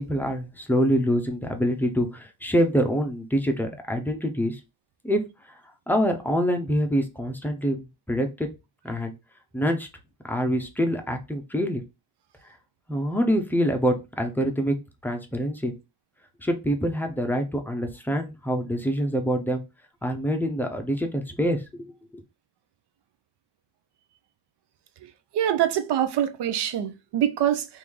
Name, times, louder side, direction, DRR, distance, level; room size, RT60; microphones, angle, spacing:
voice 1, 0.0-4.6 5.0-5.2 5.9-8.5 8.8-9.1 9.5-9.9 10.2-11.8 12.9-14.7 15.0-15.7 16.4-19.6 20.0-22.2, equal, 5° left, 0.6 m, -25 dB
voice 2, 25.3-27.7, right 10 dB, 65° right, 0.6 m, -24 dB
3.1 x 2.6 x 3.6 m
cardioid pair, 135°, 45 cm